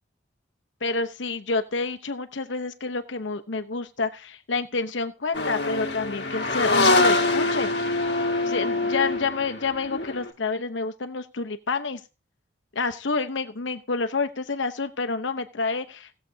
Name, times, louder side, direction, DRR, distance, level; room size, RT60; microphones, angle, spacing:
voice 1, 0.8-8.0 8.4-12.0 12.7-16.1, left 4 dB, 80° left, 8 dB, 0.9 m, -29 dB
sound 1, 5.3-10.3, left 2 dB, 60° left, 1.5 m, -24 dB
18.0 x 7.5 x 2.8 m, 0.29 s
head